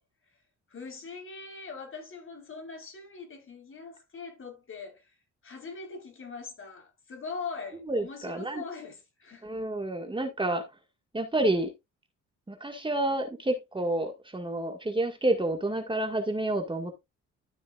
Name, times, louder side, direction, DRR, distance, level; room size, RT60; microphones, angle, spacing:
voice 1, 0.7-5.2 5.4-9.5, left 4 dB, 45° left, 4.1 m, -42 dB
voice 2, 7.9-8.6 9.4-10.6 11.1-11.7 12.5-16.9, right 1 dB, 15° right, 1.8 m, -29 dB
13.0 x 6.1 x 2.4 m
cardioid pair, 90°, 30 cm